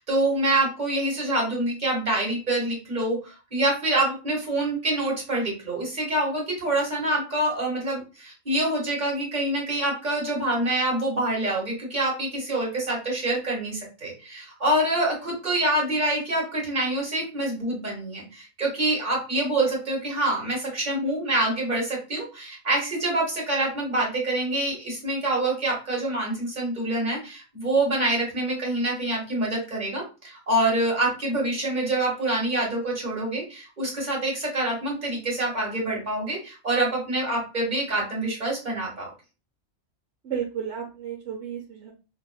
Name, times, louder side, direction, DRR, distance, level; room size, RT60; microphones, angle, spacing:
voice 1, 0.0-39.1, right 1 dB, 40° right, -2 dB, 1.7 m, -26 dB
voice 2, 40.2-41.9, right 8 dB, 70° right, 0 dB, 1.0 m, -32 dB
5.1 x 2.6 x 2.2 m, 0.32 s
omnidirectional pair, 1.3 m